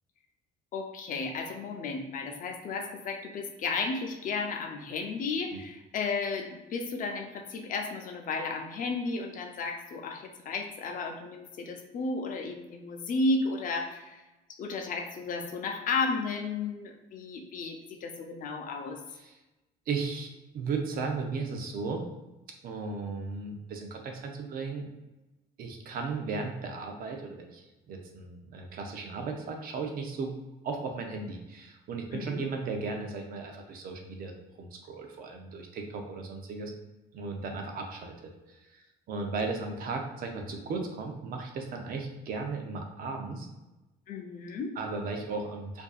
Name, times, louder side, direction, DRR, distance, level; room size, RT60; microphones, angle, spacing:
voice 1, 0.7-14.2 14.6-19.0 32.1-32.4 44.1-44.7, left 3 dB, 55° left, 3 dB, 0.6 m, -33 dB
voice 2, 19.9-22.0 22.6-24.9 25.6-30.3 30.6-34.3 34.6-36.7 37.1-43.5 44.8-45.8, right 4 dB, 60° right, 3 dB, 0.7 m, -36 dB
4.6 x 2.7 x 2.4 m, 1.0 s
cardioid pair, 110°, 17 cm